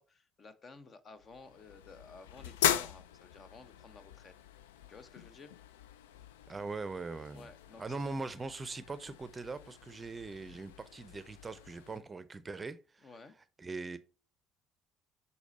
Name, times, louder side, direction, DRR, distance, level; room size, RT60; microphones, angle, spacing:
voice 1, 0.0-4.3 4.9-5.5 7.3-8.0 13.0-13.3, left 4 dB, 40° left, 0.9 m, -54 dB
sound 1, 1.2-12.0, left 10 dB, 80° left, 0.4 m, -40 dB
voice 2, 6.5-7.5 7.8-13.1 13.6-14.0, right 3 dB, 25° right, 0.6 m, -41 dB
7.1 x 4.2 x 4.1 m
hypercardioid pair, 55°, 0 cm